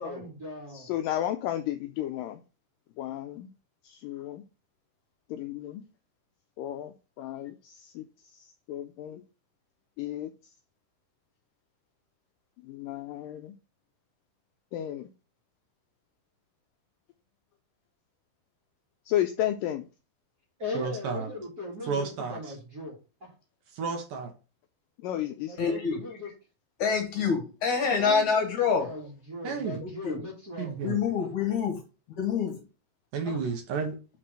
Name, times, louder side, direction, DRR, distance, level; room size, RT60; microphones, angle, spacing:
voice 1, 0.0-0.9 20.6-23.3 25.4-26.3 28.1-30.8 31.2-31.3 33.2-33.4, left 2 dB, 35° right, 1.7 m, -39 dB
voice 2, 0.7-2.4 3.0-3.5 3.8-4.4 5.3-5.8 6.6-9.2 10.0-10.3 12.6-13.5 14.7-15.1 19.1-19.9 25.0-25.6, left 12 dB, 85° left, 1.9 m, -33 dB
voice 3, 20.7-21.3 21.9-22.5 23.7-24.3 27.8-28.3 29.4-29.8 30.6-31.0 33.1-34.0, right 5 dB, 70° right, 2.5 m, -32 dB
voice 4, 25.6-26.0 26.8-28.9 29.8-30.2 30.8-31.8 32.2-32.6, left 6 dB, 60° left, 2.2 m, -27 dB
6.1 x 4.3 x 6.3 m
omnidirectional pair, 4.4 m